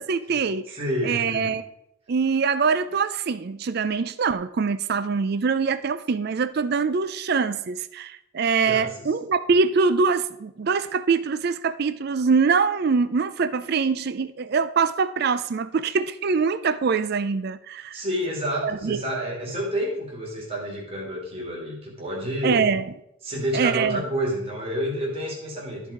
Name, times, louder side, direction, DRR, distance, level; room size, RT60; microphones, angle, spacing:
voice 1, 0.0-0.8 1.0-1.6 2.1-18.0 18.6-19.0 22.4-22.9 23.5-24.0, right 5 dB, 50° right, 0.4 m, -23 dB
voice 2, 0.7-1.5 8.7-9.1 17.9-22.7 23.2-25.9, equal, 30° right, 2.4 m, -29 dB
13.0 x 4.7 x 4.9 m
head